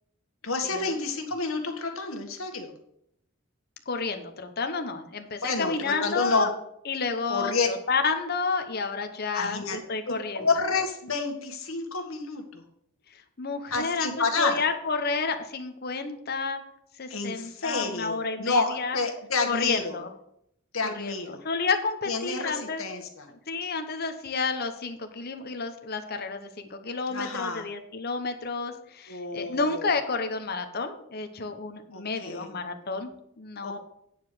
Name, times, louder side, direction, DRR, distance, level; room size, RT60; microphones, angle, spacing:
voice 1, 0.4-2.7 5.4-6.5 7.3-7.7 9.3-9.8 10.1-12.6 13.7-14.6 17.1-20.0 20.7-21.4 22.1-23.3 27.1-27.6 29.1-29.9 31.9-32.5 33.6-33.8, left 4 dB, 80° left, 4 dB, 1.8 m, -29 dB
voice 2, 3.9-6.5 6.9-10.5 13.4-16.6 17.0-19.0 19.5-20.1 20.8-22.8 23.5-33.8, left 4 dB, 50° left, 6 dB, 1.0 m, -30 dB
9.3 x 4.9 x 7.7 m, 0.74 s
head